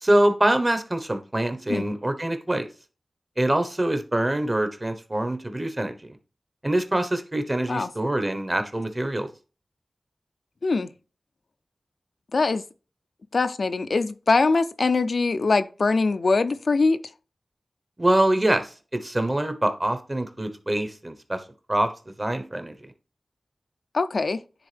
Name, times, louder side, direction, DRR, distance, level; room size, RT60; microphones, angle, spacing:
voice 1, 0.0-2.7 3.4-6.1 6.6-9.3 18.0-18.7 19.0-21.4 21.7-21.9 22.2-22.8, right 1 dB, 30° right, 1.0 m, -24 dB
voice 2, 12.3-12.6 13.3-17.0 23.9-24.4, left 3 dB, 75° left, 0.4 m, -22 dB
9.6 x 3.6 x 3.4 m
cardioid pair, 45°, 0 cm